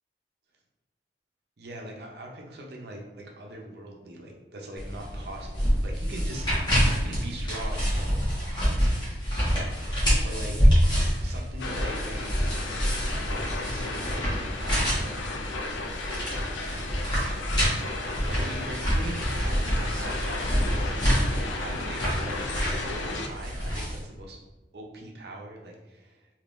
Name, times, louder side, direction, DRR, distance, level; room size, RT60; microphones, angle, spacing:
voice 1, 1.6-8.2 10.2-10.6 11.2-12.4 13.6-15.9 18.2-21.2 21.6-24.4 24.7-26.3, right 1 dB, 60° right, 0 dB, 0.6 m, -41 dB
sound 1, 4.8-24.0, equal, 25° left, 1.1 m, -27 dB
sound 2, 11.6-23.3, left 2 dB, 80° left, 0.4 m, -35 dB
3.5 x 2.7 x 2.5 m, 1.1 s
head